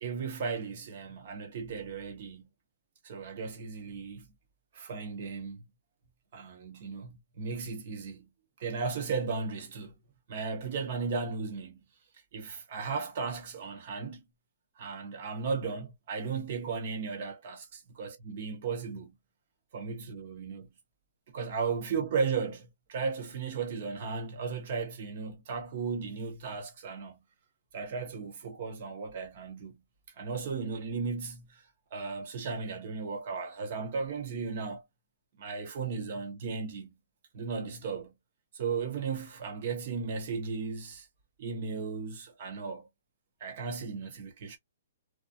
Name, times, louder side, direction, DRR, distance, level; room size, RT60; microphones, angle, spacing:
voice 1, 0.0-2.5 3.0-4.3 4.7-5.7 6.3-8.3 8.6-10.0 10.3-11.8 12.3-14.2 14.8-17.5 18.0-19.2 19.7-20.7 21.3-27.2 27.7-29.8 30.2-31.6 31.9-34.8 35.4-37.0 37.3-38.2 38.5-41.1 41.4-42.9 43.4-44.6, right 5 dB, 45° right, 0.8 m, -35 dB
2.4 x 2.2 x 2.4 m
hypercardioid pair, 160°, 0 cm